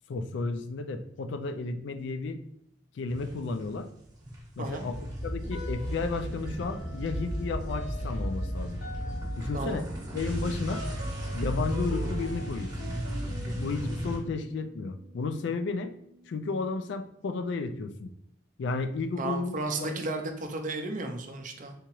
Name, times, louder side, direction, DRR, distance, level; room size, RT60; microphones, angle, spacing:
voice 1, 0.1-2.4 3.0-3.9 4.6-8.8 9.4-9.8 10.1-10.8 11.3-12.7 13.6-15.9 16.3-18.1 18.6-20.0, left 3 dB, 65° left, 9 dB, 0.3 m, -33 dB
sound 1, 3.1-3.8 4.1-14.2, equal, 20° right, 0.8 m, -34 dB
sound 2, 5.5-6.2 6.6-16.9, left 2 dB, 85° left, 1.0 m, -47 dB
voice 2, 9.5-9.9 19.2-21.7, right 2 dB, 40° right, 5 dB, 0.5 m, -34 dB
3.6 x 2.9 x 2.9 m, 0.73 s
head